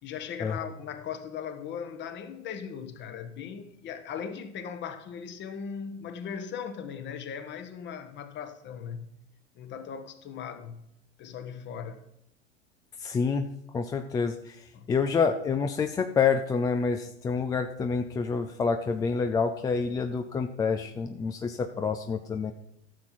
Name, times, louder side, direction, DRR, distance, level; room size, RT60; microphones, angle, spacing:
voice 1, 0.0-9.1 9.5-10.9 11.2-12.0 14.7-14.9, left 7 dB, 30° left, 1.2 m, -38 dB
voice 2, 13.0-13.5 13.7-22.5, left 5 dB, 10° left, 0.4 m, -28 dB
13.5 x 7.0 x 4.4 m
figure-of-eight pair, 85°, 36 cm